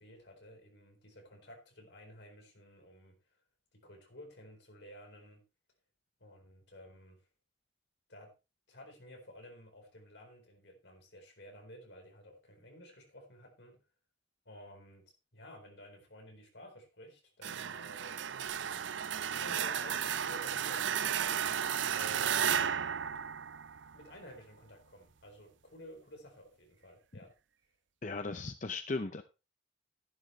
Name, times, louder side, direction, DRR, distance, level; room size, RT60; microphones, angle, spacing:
voice 1, 0.0-3.2 3.7-5.4 6.2-7.2 8.1-8.3 8.7-13.8 14.5-18.2 19.4-22.4 23.9-27.3, equal, 75° left, 3 dB, 4.3 m, -53 dB
sound 1, 17.4-24.1, right 8 dB, 85° right, 0.5 m, -34 dB
voice 2, 28.0-29.2, left 3 dB, 45° left, 9 dB, 0.7 m, -37 dB
12.5 x 11.0 x 3.2 m, 0.29 s
head